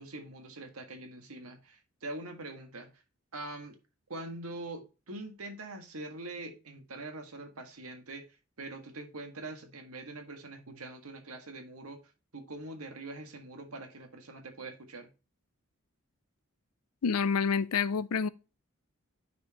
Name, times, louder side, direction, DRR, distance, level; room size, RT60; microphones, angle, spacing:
voice 1, 0.0-3.0 3.3-3.8 4.1-8.2 8.6-12.0 12.3-15.1, right 2 dB, 85° right, 1.7 m, -43 dB
voice 2, 17.0-18.3, left 5 dB, 85° left, 0.5 m, -28 dB
9.4 x 4.6 x 2.9 m
head